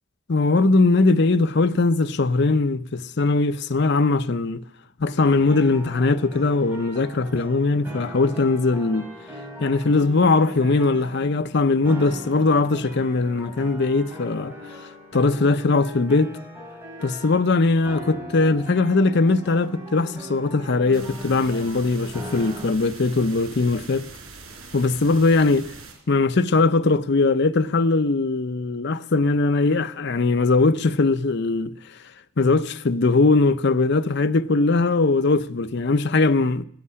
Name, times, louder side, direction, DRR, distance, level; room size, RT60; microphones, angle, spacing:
voice 1, 0.3-4.6 5.0-9.1 9.6-14.5 15.1-16.3 17.0-24.0 24.7-25.7 26.1-31.8 32.4-36.6, left 3 dB, 55° left, 0.6 m, -20 dB
sound 1, 5.2-22.7, equal, 10° right, 5.8 m, -39 dB
sound 2, 20.9-25.9, right 4 dB, 80° right, 4.3 m, -42 dB
15.5 x 8.4 x 9.8 m
head